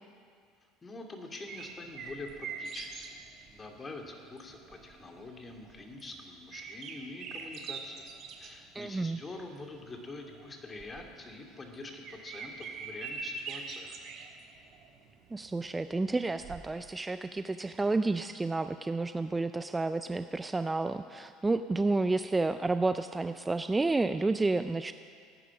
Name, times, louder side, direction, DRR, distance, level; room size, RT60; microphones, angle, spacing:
voice 1, 0.8-3.2 3.5-8.1 8.4-14.0, left 2 dB, 25° left, 2 dB, 2.4 m, -45 dB
sound 1, 1.5-16.6, right 5 dB, 55° right, 1.7 m, -44 dB
voice 2, 8.7-9.2 15.3-24.9, right 3 dB, 15° right, 11 dB, 0.4 m, -30 dB
17.5 x 10.0 x 6.0 m, 2.2 s
hypercardioid pair, 75°, 0 cm